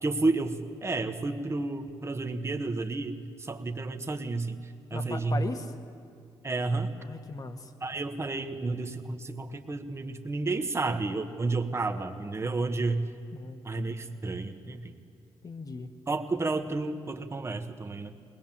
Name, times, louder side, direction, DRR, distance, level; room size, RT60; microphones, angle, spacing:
voice 1, 0.0-5.4 6.4-6.9 7.8-13.1 13.6-15.0 16.1-18.1, right 3 dB, 25° right, 7 dB, 1.4 m, -31 dB
voice 2, 4.9-5.7 7.0-7.7 13.3-13.6 15.4-15.9, left 3 dB, 35° left, 7 dB, 1.7 m, -38 dB
21.0 x 19.0 x 7.5 m, 2.5 s
cardioid pair, 75°, 10 cm